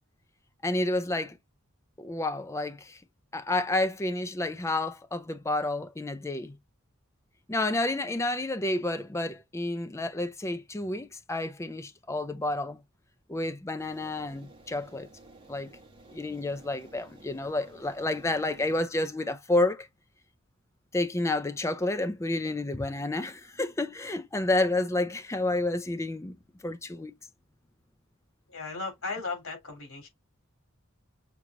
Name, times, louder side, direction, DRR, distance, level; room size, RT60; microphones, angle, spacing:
voice 1, 0.6-1.4 2.0-3.0 3.3-6.6 7.5-12.8 13.3-15.1 15.5-15.7 16.1-19.9 20.9-26.4 26.6-27.1, left 2 dB, 15° left, 0.4 m, -30 dB
sound 1, 13.8-18.8, right 2 dB, 25° right, 1.2 m, -54 dB
voice 2, 28.5-30.1, left 3 dB, 75° left, 3.3 m, -36 dB
6.0 x 2.9 x 2.5 m
head